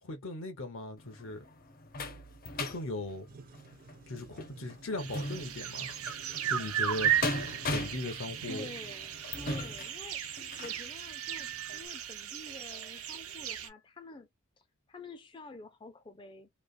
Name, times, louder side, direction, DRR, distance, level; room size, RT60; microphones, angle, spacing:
voice 1, 0.0-1.4 2.5-3.3 4.1-5.9 6.5-7.1 7.7-8.7, left 2 dB, 70° left, 1.0 m, -38 dB
sound 1, 1.0-10.8 11.4-11.5 11.9-12.0, left 2 dB, 45° left, 0.8 m, -39 dB
sound 2, 3.3-8.9, right 3 dB, 45° right, 0.4 m, -53 dB
sound 3, 5.0-13.7, right 10 dB, 90° right, 0.6 m, -35 dB
voice 2, 8.5-14.3 14.6-16.5, left 3 dB, 25° left, 0.4 m, -49 dB
3.2 x 2.0 x 2.5 m
head